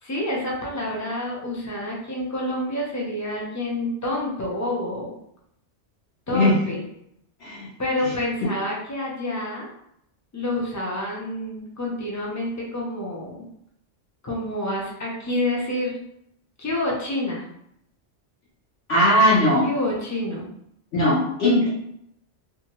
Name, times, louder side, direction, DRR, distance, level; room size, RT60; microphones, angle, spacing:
voice 1, 0.0-5.1 6.3-6.8 7.8-9.7 10.3-13.3 14.2-16.0 16.6-17.5 19.6-20.5, left 1 dB, 25° left, -3 dB, 0.4 m, -28 dB
voice 2, 18.9-19.7 20.9-21.7, left 1 dB, 60° left, -8 dB, 1.0 m, -19 dB
2.6 x 2.4 x 2.9 m, 0.75 s
omnidirectional pair, 1.2 m